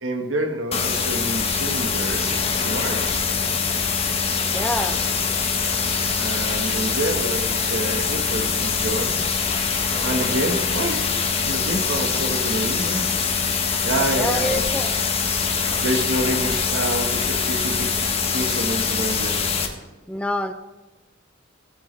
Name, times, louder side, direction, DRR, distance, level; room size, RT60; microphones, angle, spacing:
voice 1, 0.0-2.3 2.6-3.3 6.1-9.3 10.0-11.1 11.5-13.1 13.8-14.6 15.8-19.5, right 1 dB, 70° right, 4 dB, 1.5 m, -28 dB
sound 1, 0.7-19.7, left 5 dB, 30° left, 1.1 m, -23 dB
voice 2, 4.5-5.0 14.1-15.0 20.1-20.5, left 1 dB, 5° left, 8 dB, 0.5 m, -26 dB
16.0 x 8.3 x 3.3 m, 1.2 s
head